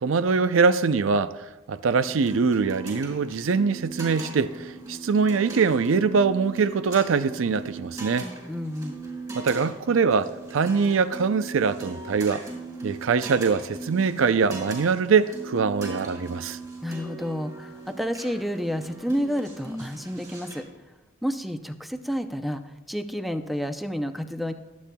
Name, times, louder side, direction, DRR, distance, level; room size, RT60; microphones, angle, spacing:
voice 1, 0.0-1.3 1.7-8.3 9.3-12.4 12.8-16.6, right 5 dB, 80° right, 0.5 m, -23 dB
sound 1, 1.9-20.6, right 3 dB, 20° right, 4.6 m, -39 dB
voice 2, 8.2-9.0 16.8-20.6 21.2-24.5, equal, ahead, 0.5 m, -30 dB
23.5 x 8.5 x 2.3 m
head